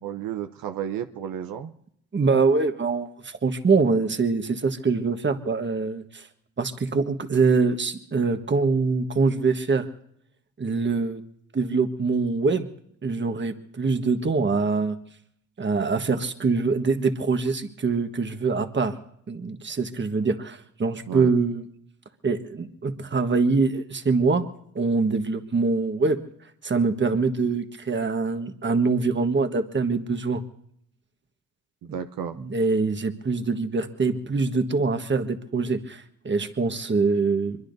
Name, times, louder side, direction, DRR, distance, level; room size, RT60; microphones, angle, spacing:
voice 1, 0.0-1.7 21.1-21.3 31.8-32.4, right 9 dB, 85° right, 8 dB, 0.8 m, -32 dB
voice 2, 2.1-6.3 6.6-9.9 10.6-11.2 11.5-12.7 13.0-15.0 15.6-18.9 19.3-21.6 22.2-26.2 26.6-30.4 32.4-37.6, right 4 dB, 35° right, 8 dB, 1.4 m, -24 dB
24.0 x 22.0 x 2.7 m, 0.72 s
cardioid pair, 70°, 34 cm